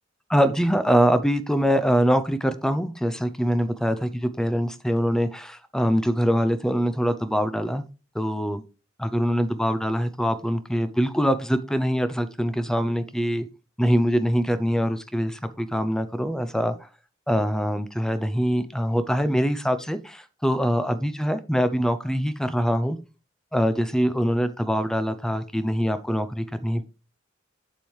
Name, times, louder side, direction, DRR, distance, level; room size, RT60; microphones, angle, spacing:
voice 1, 0.3-7.9 8.1-8.6 9.0-13.5 13.8-16.8 17.3-23.0 23.5-26.9, equal, 5° left, 12 dB, 0.5 m, -23 dB
7.4 x 7.2 x 3.2 m, 0.32 s
head